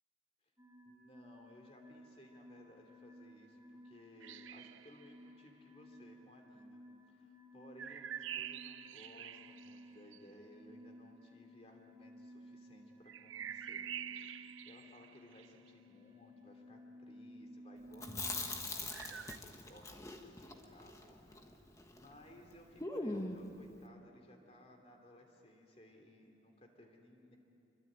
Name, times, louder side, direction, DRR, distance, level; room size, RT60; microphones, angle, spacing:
sound 1, 0.6-18.4, equal, 10° right, 4.7 m, -57 dB
voice 1, 0.8-6.8 7.1-13.9 14.3-27.4, left 1 dB, 30° left, 2 dB, 3.1 m, -60 dB
sound 2, 4.2-5.2 7.8-10.2 13.1-15.7 18.9-19.4, right 9 dB, 85° right, 0.7 m, -46 dB
Chewing mastication, 17.9-22.1 22.4-22.5 22.8-23.5, left 2 dB, 15° left, 1.5 m, -42 dB
26.5 x 23.5 x 9.0 m, 2.9 s
head